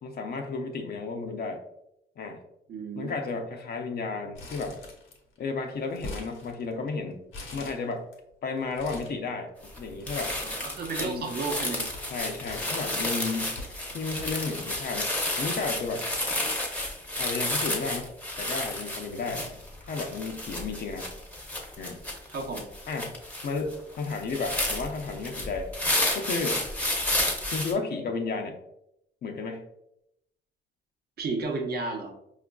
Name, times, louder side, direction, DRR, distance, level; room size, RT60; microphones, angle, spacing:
voice 1, 0.0-1.6 2.2-2.4 3.0-4.8 5.4-7.2 7.5-8.0 8.4-10.4 11.0-11.3 12.1-13.6 13.9-15.1 15.4-16.1 17.2-18.1 18.4-19.5 19.9-21.1 21.8-22.0 22.9-23.1 23.4-25.7 26.1-26.7 27.5-28.6 29.2-29.7, left 4 dB, 50° left, 4 dB, 0.5 m, -33 dB
voice 2, 2.7-3.4 10.4-11.9 19.3-19.4 22.3-22.7 31.2-32.1, right 3 dB, 55° right, 2 dB, 0.7 m, -33 dB
Crumpling crinkling, 4.3-5.4 5.6-6.9 7.3-8.1 8.6-9.2 10.0-10.8 11.0-15.1 15.7-15.8 16.0-17.1 17.4-17.5 18.5-18.7, left 2 dB, 80° left, 0.9 m, -44 dB
sound 1, 9.6-9.8 10.1-27.7, left 1 dB, 5° left, 0.7 m, -31 dB
4.9 x 2.4 x 2.2 m, 0.80 s
cardioid pair, 90°, 20 cm